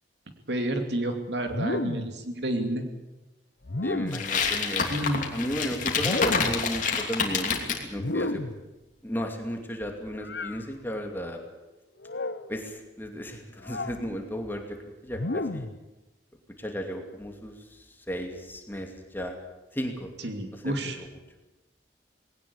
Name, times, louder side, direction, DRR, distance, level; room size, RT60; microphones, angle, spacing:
voice 1, 0.5-2.8 4.9-5.2 20.2-21.0, right 1 dB, 70° right, 5 dB, 2.8 m, -29 dB
sound 1, 1.5-2.2 3.6-4.4 5.9-6.7 7.9-8.7 10.2-10.6 12.0-12.5 13.6-14.0 15.1-15.8, left 2 dB, 65° left, 1.0 m, -32 dB
voice 2, 3.8-4.9 5.3-7.6 7.8-8.4 9.0-11.4 12.5-15.7 16.6-19.4 19.7-20.1 20.5-21.1, equal, 10° left, 3 dB, 2.5 m, -34 dB
sound 2, 4.1-7.8, left 5 dB, 45° left, 2.9 m, -27 dB
20.0 x 18.0 x 8.6 m, 1.0 s
head